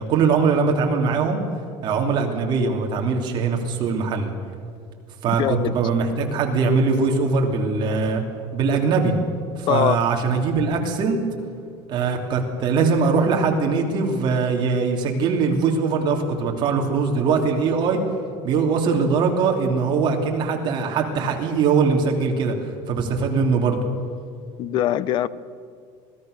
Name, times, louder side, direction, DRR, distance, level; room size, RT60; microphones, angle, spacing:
voice 1, 0.0-1.4 1.8-4.3 5.2-8.2 8.5-9.1 9.6-11.2 11.9-18.0 18.4-23.8, right 5 dB, 40° right, 3.1 m, -21 dB
voice 2, 5.4-5.7 9.7-10.0 24.6-25.3, left 11 dB, 40° left, 0.7 m, -22 dB
26.0 x 18.5 x 6.7 m
cardioid pair, 165°, 12 cm